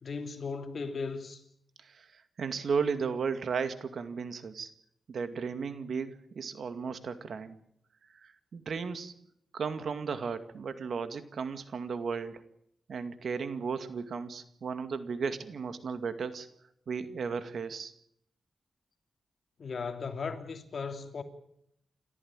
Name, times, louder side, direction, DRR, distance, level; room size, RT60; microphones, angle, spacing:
voice 1, 0.0-1.4 19.6-21.2, left 5 dB, 60° left, 2.9 m, -37 dB
voice 2, 1.8-4.7 5.1-7.6 8.2-9.2 9.5-12.4 12.9-16.5 16.9-17.9, right 5 dB, 70° right, 2.2 m, -35 dB
28.5 x 13.5 x 9.0 m
cardioid pair, 80°, 0 cm